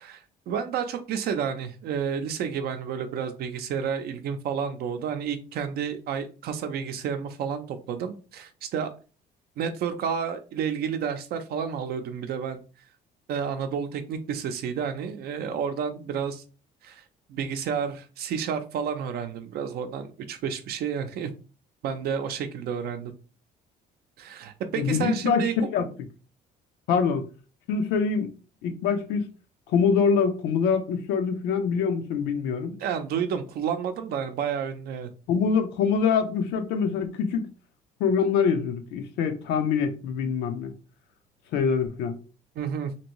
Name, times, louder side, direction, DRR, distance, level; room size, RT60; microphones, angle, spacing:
voice 1, 0.0-8.9 9.6-12.6 13.3-16.4 16.8-17.0 17.3-21.3 21.8-23.1 24.2-25.7 32.8-35.1 42.6-42.9, right 7 dB, 70° right, 0.6 m, -30 dB
voice 2, 24.8-25.4 25.7-25.9 26.9-27.3 27.7-28.3 28.6-29.2 29.7-32.8 35.3-37.5 38.0-40.7 41.5-42.2, left 6 dB, 85° left, 0.6 m, -24 dB
2.9 x 2.6 x 2.9 m
cardioid pair, 110°, 17 cm